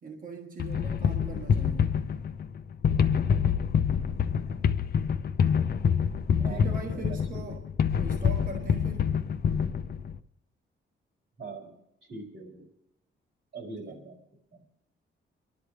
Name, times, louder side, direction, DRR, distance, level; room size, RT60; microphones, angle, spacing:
voice 1, 0.0-1.9 6.4-7.7 8.0-9.2 13.9-14.0, right 3 dB, 45° right, 1.5 m, -41 dB
sound 1, 0.6-10.2, left 7 dB, 50° left, 0.7 m, -26 dB
voice 2, 6.4-7.6 11.4-12.7 13.5-14.2 14.5-14.6, right 3 dB, 70° right, 4.5 m, -42 dB
29.0 x 12.0 x 3.3 m
cardioid pair, 125°, 20 cm